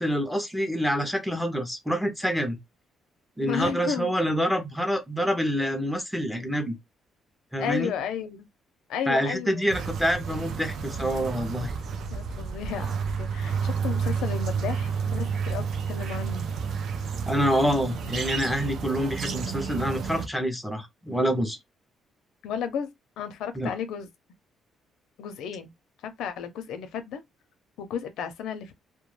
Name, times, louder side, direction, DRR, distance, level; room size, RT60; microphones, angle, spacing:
voice 1, 0.0-2.6 3.4-6.8 7.5-7.9 9.1-11.7 17.3-21.6 23.6-23.8, equal, ahead, 0.5 m, -27 dB
voice 2, 3.4-4.1 7.6-8.5 8.9-9.7 12.1-16.4 22.4-22.9 23.2-24.1 25.2-25.7 26.0-27.2 27.8-28.7, left 7 dB, 85° left, 0.6 m, -33 dB
sound 1, 9.7-20.3, right 6 dB, 60° right, 0.4 m, -30 dB
2.2 x 2.2 x 3.1 m
cardioid pair, 150°, 0 cm